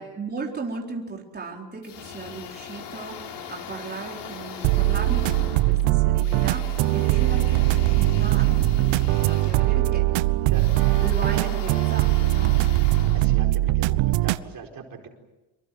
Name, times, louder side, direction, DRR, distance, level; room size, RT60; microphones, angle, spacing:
voice 1, 0.0-10.1 11.0-12.7, right 4 dB, 20° right, -1 dB, 4.2 m, -36 dB
sound 1, 1.8-14.0, left 7 dB, 60° left, 4.5 m, -40 dB
sound 2, 4.6-14.4, right 17 dB, 75° right, 1.0 m, -21 dB
voice 2, 10.5-10.9 11.6-11.7 12.0-12.1 13.1-15.1, right 6 dB, 45° right, 2 dB, 4.6 m, -41 dB
27.0 x 23.5 x 7.8 m, 1.1 s
cardioid pair, 105°, 48 cm